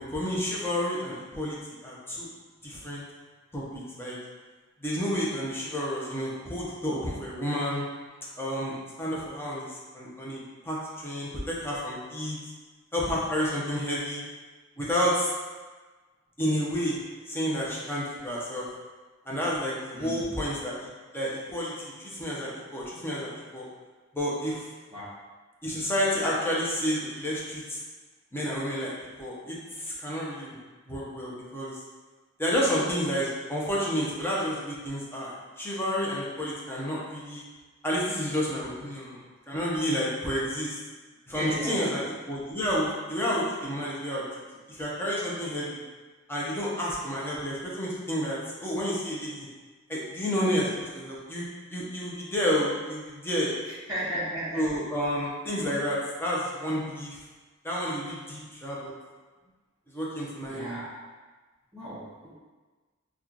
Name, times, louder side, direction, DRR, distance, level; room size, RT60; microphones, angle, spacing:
voice 1, 0.0-1.6 1.8-2.3 2.6-3.0 3.5-4.2 4.8-7.8 8.4-12.4 12.9-14.2 14.8-15.3 16.4-17.0 17.3-18.7 19.3-20.7 21.1-23.7 24.1-24.6 25.6-27.8 28.3-28.9 29.2-30.6 30.9-31.8 32.4-37.4 37.8-39.2 39.5-40.8 41.3-44.2 44.7-45.8 46.3-49.5 49.9-51.5 51.7-53.5 54.6-57.2 57.6-58.9 59.9-60.7, equal, 10° left, -6 dB, 0.7 m, -30 dB
voice 2, 41.3-41.8 53.9-54.7 55.5-55.7 60.5-61.0 61.7-62.3, right 1 dB, 15° right, -14 dB, 0.9 m, -34 dB
3.0 x 2.4 x 3.7 m, 1.3 s
head